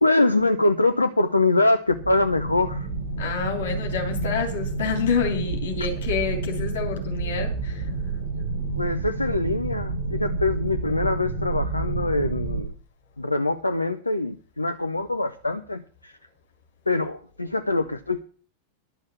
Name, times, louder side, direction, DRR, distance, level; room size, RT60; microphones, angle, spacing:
voice 1, 0.0-2.9 8.8-12.7 13.2-16.1 16.9-18.2, left 2 dB, 85° left, 0.6 m, -24 dB
sound 1, 1.9-12.6, right 3 dB, 45° right, 4.5 m, -29 dB
voice 2, 3.2-7.8, left 5 dB, 60° left, 3.2 m, -28 dB
11.5 x 6.4 x 7.4 m
figure-of-eight pair, 90°, 0 cm